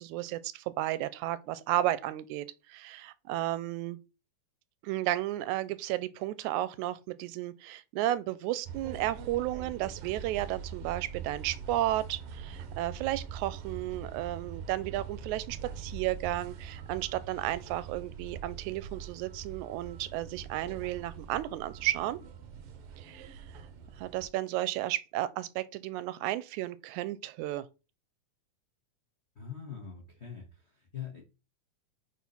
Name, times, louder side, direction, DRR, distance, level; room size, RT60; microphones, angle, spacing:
voice 1, 0.0-4.0 4.8-22.2 23.0-23.4 24.0-27.7, right 15 dB, 85° right, 1.9 m, -33 dB
sound 1, 8.6-24.3, right 7 dB, 65° right, 1.6 m, -43 dB
voice 2, 29.3-31.2, left 8 dB, 60° left, 0.6 m, -43 dB
4.6 x 4.2 x 5.3 m
omnidirectional pair, 3.4 m